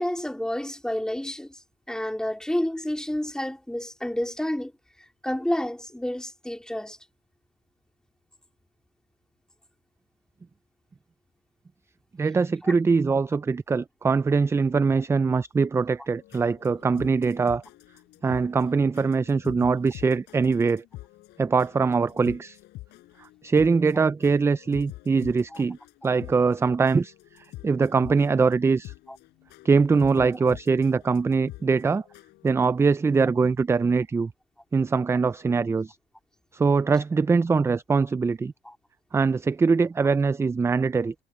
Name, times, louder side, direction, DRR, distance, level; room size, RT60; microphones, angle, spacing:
voice 1, 0.0-1.6 1.9-4.7 5.2-7.0 12.6-12.7 25.5-25.6 29.1-29.2 38.6-38.8, left 1 dB, 5° left, 3.5 m, -29 dB
voice 2, 12.2-17.6 18.2-20.8 21.4-22.6 23.2-25.8 26.0-27.1 27.6-28.9 29.6-32.0 32.4-34.3 34.7-36.0 36.5-38.5 39.1-41.1, right 4 dB, 15° right, 0.3 m, -22 dB
sound 1, 16.1-32.7, left 18 dB, 85° left, 7.4 m, -46 dB
cardioid pair, 110°, 17 cm